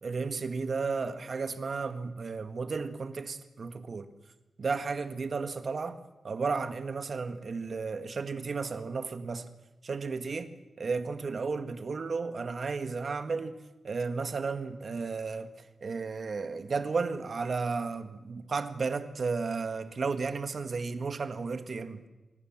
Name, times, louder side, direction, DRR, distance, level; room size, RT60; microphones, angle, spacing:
voice 1, 0.0-4.1 4.6-6.0 6.2-9.5 9.8-10.5 10.8-13.6 13.8-22.1, right 4 dB, 60° right, 1.9 m, -33 dB
27.0 x 20.0 x 7.6 m
wide cardioid pair, 85°, 0 cm